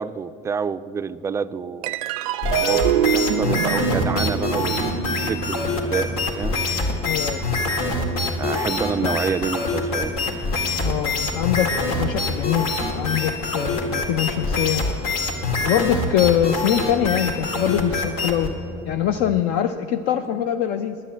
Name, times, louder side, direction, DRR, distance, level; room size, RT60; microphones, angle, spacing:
voice 1, 0.0-2.0 2.6-6.6 8.4-10.1, right 6 dB, 15° right, 13 dB, 0.3 m, -28 dB
sound 1, 1.8-8.5, right 9 dB, 85° right, 0.5 m, -26 dB
sound 2, 2.4-18.5, left 3 dB, 80° left, 1.8 m, -25 dB
sound 3, 3.9-19.4, equal, 5° left, 0.8 m, -35 dB
voice 2, 7.0-7.4 9.0-9.1 10.8-14.8 15.6-18.5 18.8-21.0, left 10 dB, 60° left, 7 dB, 0.5 m, -23 dB
9.9 x 9.4 x 7.3 m, 2.6 s
supercardioid pair, 110°, 18 cm